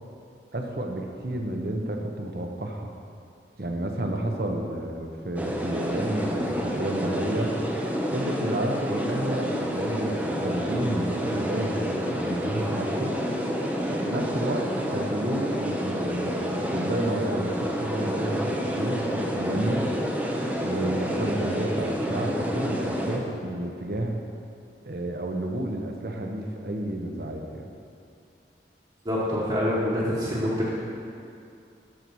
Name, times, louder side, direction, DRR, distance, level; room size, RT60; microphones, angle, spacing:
voice 1, 0.5-2.9 3.6-7.6 8.1-13.1 13.9-19.9 20.6-24.2 24.8-27.7, right 1 dB, 55° right, 2 dB, 1.0 m, -31 dB
sound 1, 5.4-23.2, equal, 10° right, 0.7 m, -29 dB
voice 2, 29.0-30.7, equal, 25° right, -8 dB, 1.3 m, -26 dB
12.5 x 4.6 x 6.2 m, 2.5 s
head